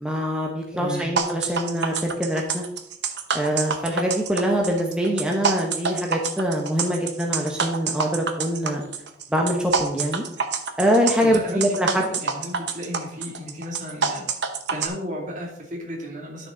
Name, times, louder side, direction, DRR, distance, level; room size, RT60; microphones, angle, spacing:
voice 1, 0.0-2.7 3.3-8.8 9.3-10.2 10.8-12.1, equal, 5° right, -1 dB, 1.0 m, -24 dB
voice 2, 0.7-1.1 11.2-11.9 12.2-14.3 14.7-16.5, equal, 45° right, 0 dB, 2.4 m, -33 dB
sound 1, 1.2-14.9, right 5 dB, 80° right, 1.0 m, -27 dB
11.0 x 6.6 x 3.8 m, 0.75 s
head